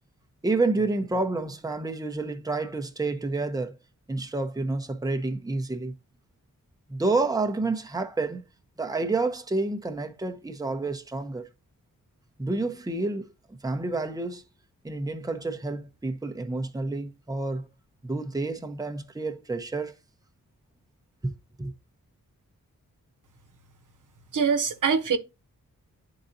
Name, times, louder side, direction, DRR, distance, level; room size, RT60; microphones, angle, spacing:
voice 1, 0.4-3.8 4.1-5.9 6.9-8.4 8.8-11.5 12.4-14.4 14.8-17.7 18.0-20.0 21.2-21.3 21.6-21.7, right 3 dB, 10° right, 0.8 m, -29 dB
voice 2, 24.3-25.2, right 6 dB, 65° right, 1.0 m, -23 dB
10.5 x 3.9 x 2.7 m
cardioid pair, 65°, 34 cm